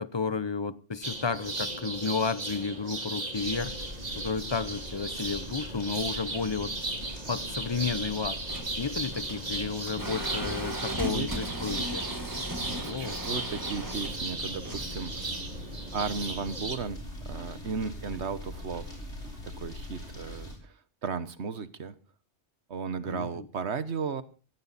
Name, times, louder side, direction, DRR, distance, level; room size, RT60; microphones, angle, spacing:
voice 1, 0.0-3.7 4.2-6.7 7.3-8.4 8.8-12.1 12.8-13.2 18.3-18.4 23.0-23.5, left 4 dB, 25° left, 0.7 m, -32 dB
sound 1, 1.0-16.8, right 2 dB, 35° right, 2.6 m, -36 dB
sound 2, 3.3-20.6, left 1 dB, 90° left, 6.1 m, -43 dB
sound 3, 8.4-16.2, right 1 dB, 15° right, 1.4 m, -38 dB
voice 2, 11.0-11.3 12.6-15.3 15.9-19.0 19.4-20.8 21.0-22.0 22.7-24.2, right 5 dB, 70° right, 1.4 m, -35 dB
16.5 x 16.5 x 4.2 m
omnidirectional pair, 1.2 m